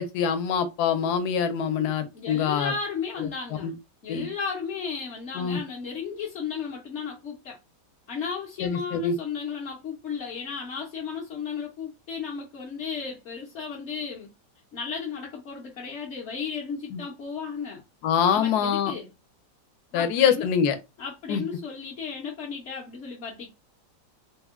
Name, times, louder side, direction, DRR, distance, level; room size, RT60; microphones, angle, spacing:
voice 1, 0.0-2.7 3.6-3.7 4.1-4.3 5.3-5.6 8.6-9.1 16.9-17.0 18.0-18.9 19.9-20.8 21.3-21.4, left 7 dB, 75° left, 1.1 m, -24 dB
voice 2, 2.1-3.7 4.0-7.6 8.1-14.3 14.7-17.8 18.3-19.1 19.9-20.5 21.0-23.5, left 6 dB, 60° left, 0.8 m, -34 dB
3.5 x 2.1 x 3.5 m
omnidirectional pair, 1.8 m